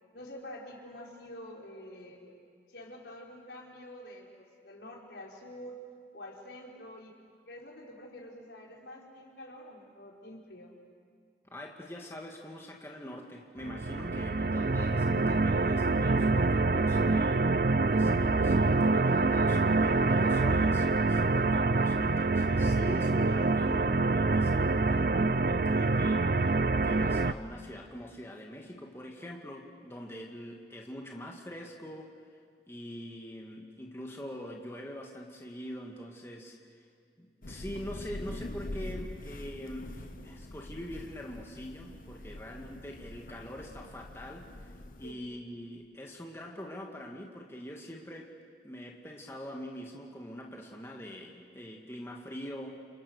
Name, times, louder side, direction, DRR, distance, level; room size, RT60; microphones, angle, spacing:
voice 1, 0.1-2.3 2.7-5.8 6.1-7.1 7.5-10.8 42.1-42.4 45.0-45.2, left 1 dB, 80° left, -2 dB, 5.2 m, -47 dB
voice 2, 11.5-32.3 32.7-36.9 37.2-48.3 48.6-52.8, equal, 15° left, 0 dB, 1.9 m, -44 dB
sound 1, 13.6-27.3, right 3 dB, 55° right, 0.6 m, -26 dB
Thunder / Rain, 37.4-45.1, left 1 dB, 50° left, 1.0 m, -44 dB
29.5 x 29.0 x 6.6 m, 2.1 s
head